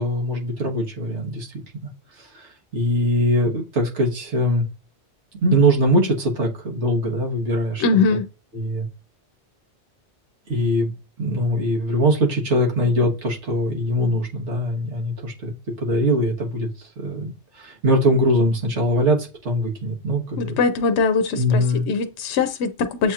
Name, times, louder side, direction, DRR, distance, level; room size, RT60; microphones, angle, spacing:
voice 1, 0.0-1.5 2.2-4.6 5.4-7.8 8.5-8.9 10.5-10.9 11.2-16.7 17.0-17.3 17.6-20.5 21.4-21.9, equal, 85° right, 1.6 m, -22 dB
voice 2, 7.8-8.2 20.4-23.1, left 4 dB, 80° left, 0.8 m, -21 dB
7.6 x 2.8 x 2.4 m
omnidirectional pair, 1.1 m